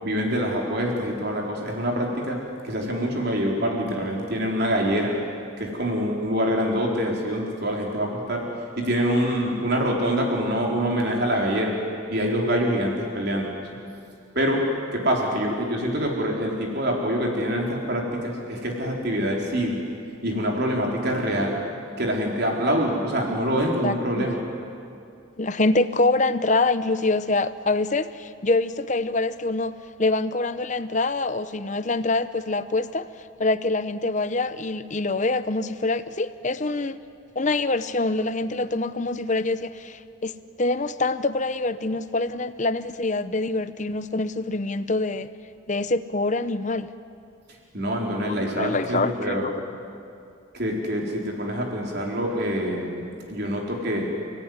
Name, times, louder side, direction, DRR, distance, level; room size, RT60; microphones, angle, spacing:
voice 1, 0.0-2.4 2.6-5.1 5.6-8.4 8.8-11.8 12.1-13.5 14.3-14.6 14.9-19.8 20.2-21.6 22.0-24.4 47.7-49.5 50.5-54.1, equal, 50° right, -1 dB, 4.4 m, -25 dB
voice 2, 23.8-24.2 25.4-33.1 33.4-37.0 37.3-40.3 40.6-45.3 45.7-46.9 48.2-49.5, left 2 dB, 35° left, 12 dB, 0.8 m, -25 dB
30.0 x 18.0 x 9.7 m, 2.5 s
head